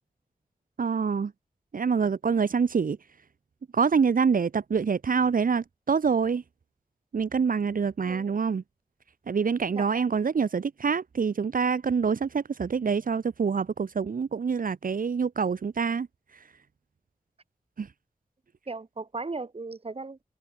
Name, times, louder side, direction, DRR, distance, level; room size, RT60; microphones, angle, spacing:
voice 1, 0.8-1.3 1.7-3.0 3.7-6.4 7.1-8.6 9.3-16.1 17.8-17.9, right 5 dB, 70° right, 0.8 m, -26 dB
voice 2, 18.7-20.2, right 3 dB, 40° right, 1.2 m, -36 dB
cardioid pair, 40°, 15 cm